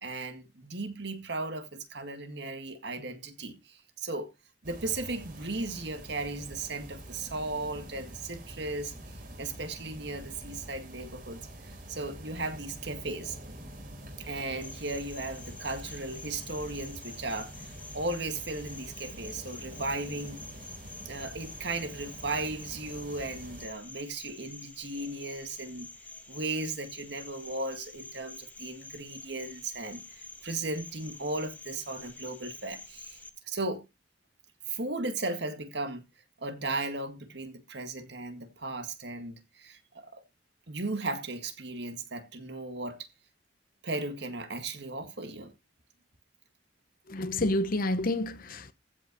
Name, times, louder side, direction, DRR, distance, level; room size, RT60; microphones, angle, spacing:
voice 1, 0.0-4.3 4.6-13.4 14.2-20.4 21.1-25.9 26.3-33.2 33.4-33.8 34.7-36.1 36.4-40.2 40.7-43.1 43.8-45.5, right 2 dB, 65° right, 2.0 m, -36 dB
sound 1, 4.6-23.7, right 1 dB, 50° right, 4.1 m, -46 dB
Cricket, 14.6-33.3, left 3 dB, 10° left, 1.3 m, -48 dB
voice 2, 47.1-48.7, left 1 dB, 50° left, 0.9 m, -29 dB
15.0 x 5.7 x 5.3 m
head